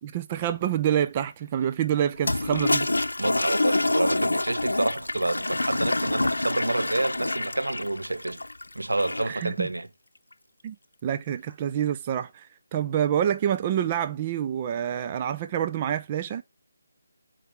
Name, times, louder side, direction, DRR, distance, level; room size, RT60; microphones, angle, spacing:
voice 1, 0.0-2.9 9.3-9.7 10.6-10.8 11.0-16.4, right 10 dB, 25° right, 0.6 m, -27 dB
Toilet flush, 2.2-9.4, left 2 dB, 85° left, 0.7 m, -27 dB
voice 2, 3.2-8.4 8.7-9.9, right 2 dB, 85° right, 1.3 m, -28 dB
7.8 x 4.8 x 5.8 m
figure-of-eight pair, 155°, 0 cm